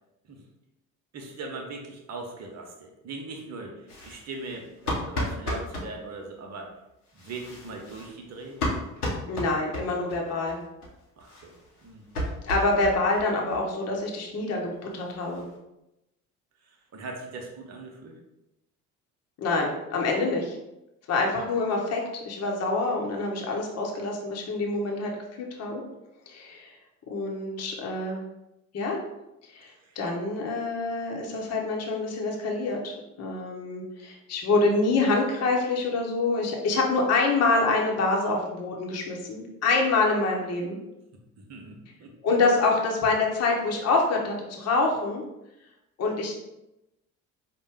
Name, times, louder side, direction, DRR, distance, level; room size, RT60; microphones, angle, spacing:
voice 1, 1.1-6.7 7.1-8.6 11.2-11.6 11.8-12.1 16.6-18.2 29.6-30.0 41.4-42.1, right 3 dB, 35° right, 2 dB, 0.9 m, -40 dB
sound 1, 3.9-5.9 7.1-10.2 10.5-10.6 10.8-10.9 11.2-13.3 13.5-13.6 13.9-14.0 14.4-14.5 14.7-15.5, left 1 dB, 85° left, 1.0 m, -34 dB
voice 2, 9.3-10.6 12.4-15.4 19.4-20.5 21.1-25.1 25.4-25.8 26.3-26.8 27.1-28.2 28.7-29.0 29.5-40.8 42.2-45.2 46.0-46.4, left 3 dB, 35° left, -1 dB, 1.0 m, -26 dB
5.2 x 2.1 x 3.6 m, 0.92 s
figure-of-eight pair, 55°, 44 cm